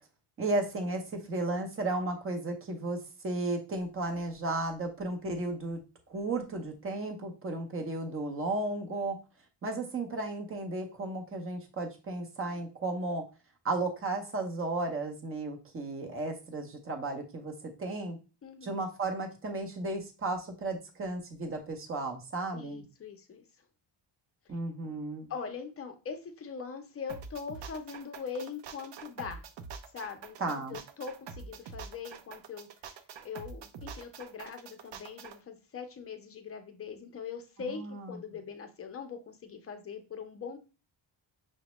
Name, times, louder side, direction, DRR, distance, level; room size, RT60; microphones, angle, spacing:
voice 1, 0.4-5.8 6.1-9.2 9.6-13.2 13.6-18.2 18.6-22.8 24.5-25.3 30.4-30.8 37.6-38.1, right 2 dB, 30° right, 3 dB, 0.7 m, -34 dB
voice 2, 18.4-18.8 22.5-23.4 25.3-29.4 29.9-32.7 33.2-37.8 38.1-40.6, left 6 dB, 30° left, 6 dB, 0.6 m, -41 dB
sound 1, 27.1-35.4, right 6 dB, 70° right, 0.6 m, -45 dB
5.9 x 2.1 x 3.0 m, 0.31 s
wide cardioid pair, 160°, 45 cm